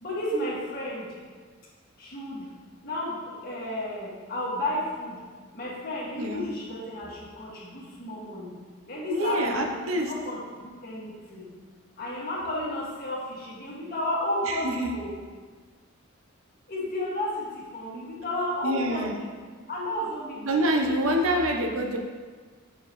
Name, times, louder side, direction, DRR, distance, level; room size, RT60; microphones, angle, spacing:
voice 1, 0.0-1.1 2.0-2.5 2.8-5.2 5.5-8.5 8.9-9.8 10.0-11.5 12.0-15.1 16.7-19.3 19.7-21.5, left 1 dB, 45° left, -8 dB, 2.0 m, -32 dB
voice 2, 6.2-6.5 9.1-10.1 14.5-14.9 18.6-19.2 20.4-22.0, right 1 dB, 75° right, 2 dB, 0.8 m, -26 dB
6.6 x 6.5 x 3.1 m, 1.5 s
head